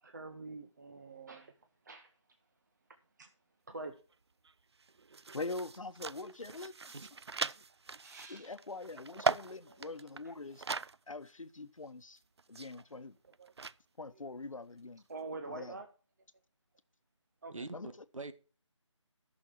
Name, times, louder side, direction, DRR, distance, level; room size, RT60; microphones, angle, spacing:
voice 1, 0.0-1.5 1.8-2.1 3.2-3.3 3.7-3.9 8.0-8.5 9.8-10.0 10.2-10.3 12.7-13.0 13.4-13.5 15.1-15.9 17.4-17.6, right 3 dB, 35° right, 1.0 m, -46 dB
sound 1, 4.1-4.2 4.5-11.0 11.3-11.4 12.2-13.8, right 4 dB, 55° right, 0.4 m, -39 dB
voice 2, 5.3-7.0 8.3-10.6 11.1-12.2 12.5-13.2 14.0-15.0 15.5-15.8 17.7-17.9, left 3 dB, 85° left, 1.1 m, -43 dB
voice 3, 17.5-18.3, right 3 dB, 85° right, 1.5 m, -44 dB
14.0 x 6.4 x 4.5 m
figure-of-eight pair, 170°, 16 cm